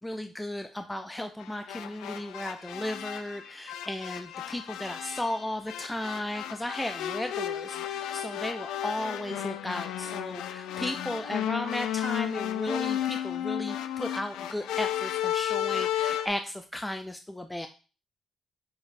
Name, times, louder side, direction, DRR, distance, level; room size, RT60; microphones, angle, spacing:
voice 1, 0.0-17.7, left 1 dB, 10° left, 6 dB, 0.3 m, -35 dB
sound 1, 1.4-16.3, left 11 dB, 85° left, 0.3 m, -33 dB
5.8 x 3.1 x 2.6 m, 0.34 s
cardioid pair, 90°, 0 cm